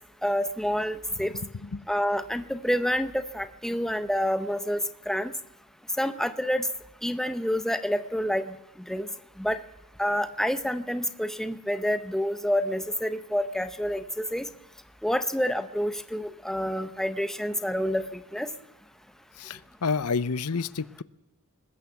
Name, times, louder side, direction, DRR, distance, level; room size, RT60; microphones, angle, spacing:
voice 1, 0.2-1.3 1.9-4.8 5.1-5.3 6.0-6.7 7.0-8.5 8.9-9.1 9.4-9.6 10.0-14.0 14.3-14.5 15.0-18.5, equal, ahead, 11 dB, 0.9 m, -28 dB
voice 2, 1.3-1.8 19.4-21.0, left 5 dB, 85° left, 17 dB, 0.8 m, -30 dB
22.5 x 20.0 x 7.1 m, 1.0 s
head